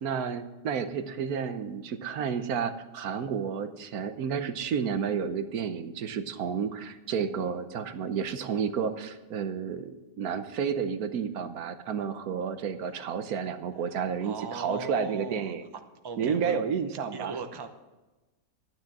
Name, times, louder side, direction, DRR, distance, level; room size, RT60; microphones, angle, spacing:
voice 1, 0.0-15.6 16.2-17.4, right 7 dB, 85° right, 10 dB, 1.4 m, -31 dB
voice 2, 14.2-15.5 16.0-16.6 17.1-17.7, right 4 dB, 20° right, 6 dB, 0.7 m, -37 dB
12.0 x 9.5 x 6.0 m, 1.1 s
omnidirectional pair, 1.5 m